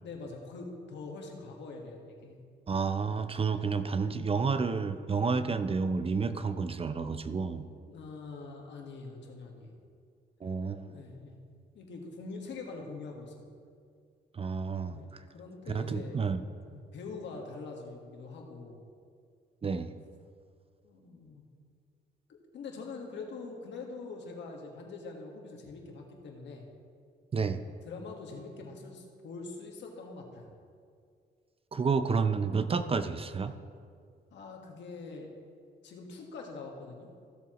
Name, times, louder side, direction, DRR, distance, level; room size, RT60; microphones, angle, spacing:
voice 1, 0.0-2.4 7.9-9.8 10.9-11.4 11.7-13.4 14.9-16.2 16.7-18.8 20.8-21.5 22.5-26.6 27.8-30.5 34.3-35.3 35.8-37.1, left 3 dB, 80° left, 1 dB, 1.6 m, -44 dB
voice 2, 2.7-7.7 10.4-10.9 14.3-15.2 15.7-16.4 19.6-19.9 27.3-27.6 31.7-33.5, right 5 dB, 30° right, 11 dB, 0.5 m, -30 dB
15.5 x 7.2 x 3.0 m, 2.2 s
cardioid pair, 85°, 18 cm